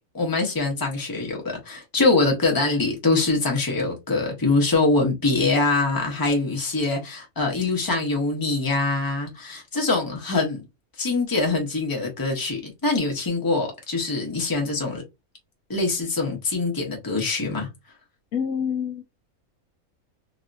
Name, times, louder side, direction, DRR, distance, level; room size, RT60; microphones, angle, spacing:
voice 1, 0.1-10.6 11.0-15.0 15.7-17.7, left 3 dB, 15° left, 0.9 m, -24 dB
voice 2, 18.3-19.0, left 7 dB, 70° left, 0.9 m, -26 dB
3.0 x 2.8 x 2.5 m
omnidirectional pair, 1.5 m